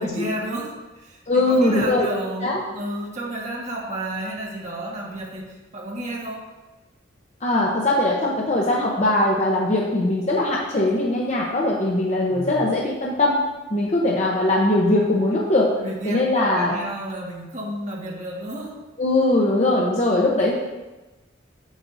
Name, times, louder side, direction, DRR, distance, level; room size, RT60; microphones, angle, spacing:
voice 1, 0.0-6.5 12.3-12.6 15.7-16.2 16.5-18.8, right 1 dB, 40° right, -3 dB, 1.7 m, -31 dB
voice 2, 1.3-2.1 2.4-2.6 7.4-13.4 13.7-15.7 16.0-16.8 19.0-20.5, left 2 dB, 35° left, -3 dB, 0.9 m, -20 dB
8.9 x 7.5 x 2.7 m, 1.1 s
head